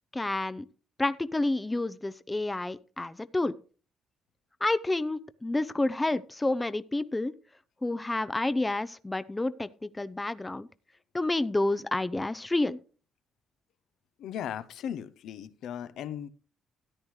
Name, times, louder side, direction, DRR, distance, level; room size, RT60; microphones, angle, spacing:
voice 1, 0.1-0.6 1.0-3.5 4.6-7.3 7.8-10.7 11.1-12.8, left 2 dB, 15° left, 15 dB, 0.5 m, -29 dB
voice 2, 14.2-16.3, left 9 dB, 80° left, 14 dB, 0.7 m, -37 dB
13.5 x 9.8 x 3.2 m, 0.38 s
cardioid pair, 90°, 0 cm